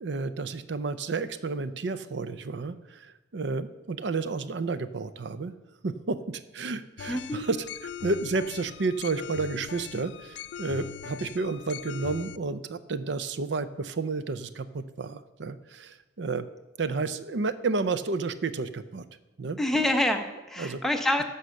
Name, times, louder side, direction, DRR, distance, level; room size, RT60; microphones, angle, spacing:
voice 1, 0.0-5.5 5.8-7.7 8.0-16.5 16.8-19.1 19.4-19.6 20.6-20.8, right 3 dB, 70° right, 13 dB, 0.6 m, -31 dB
sound 1, 7.0-12.4, left 9 dB, 70° left, 0.3 m, -41 dB
voice 2, 7.1-7.5 19.6-21.2, left 1 dB, ahead, 4 dB, 0.9 m, -26 dB
14.5 x 5.7 x 6.4 m, 1.0 s
head